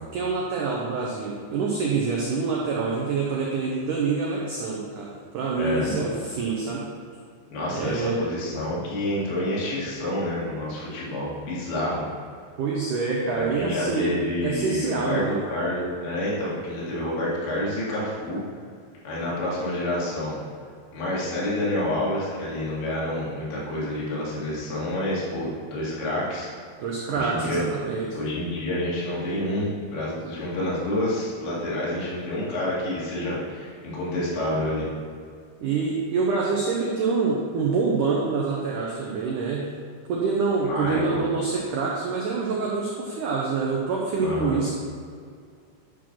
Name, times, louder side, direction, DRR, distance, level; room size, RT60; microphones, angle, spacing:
voice 1, 0.1-6.9 7.7-8.2 12.6-14.1 14.4-15.4 26.8-28.2 35.6-39.7 40.1-44.7, right 4 dB, 90° right, -3 dB, 1.8 m, -26 dB
voice 2, 5.6-5.9 7.5-12.1 13.3-18.4 19.0-20.4 20.9-26.5 27.1-27.6 28.1-34.9 40.6-41.2 44.2-44.6, left 1 dB, 80° left, -7 dB, 4.7 m, -28 dB
11.0 x 4.7 x 6.0 m, 2.2 s
omnidirectional pair, 5.1 m